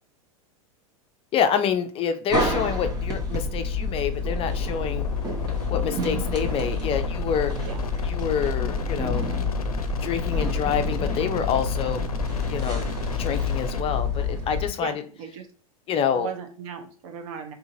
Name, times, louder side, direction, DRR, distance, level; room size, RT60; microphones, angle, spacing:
voice 1, 1.3-5.1 5.7-7.5 8.0-9.4 10.0-12.0 12.5-12.8 13.2-15.0 15.9-16.3, left 8 dB, 30° left, 8 dB, 0.4 m, -27 dB
sound 1, 2.3-14.7, left 3 dB, 20° right, 1.0 m, -28 dB
sound 2, 4.2-13.8, left 4 dB, 90° left, 0.4 m, -34 dB
voice 2, 14.8-15.5 16.1-17.5, right 7 dB, 60° right, 6 dB, 0.8 m, -37 dB
3.7 x 2.7 x 2.7 m, 0.41 s
hypercardioid pair, 90°, 18 cm